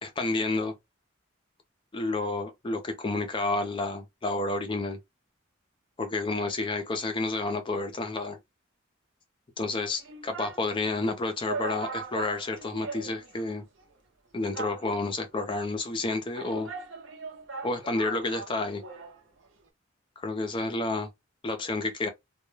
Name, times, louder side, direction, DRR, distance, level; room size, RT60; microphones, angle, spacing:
voice 1, 0.0-0.7 1.9-5.0 6.0-8.4 9.6-13.6 14.3-16.7 17.6-18.8 20.2-21.1 21.4-22.1, left 2 dB, 25° left, 0.4 m, -30 dB
sound 1, 9.7-10.7 11.1-11.2 11.4-13.5 13.8-13.9 14.5-15.2 16.0-19.2 19.4-19.5, right 4 dB, 65° right, 0.6 m, -39 dB
2.2 x 2.0 x 3.1 m
head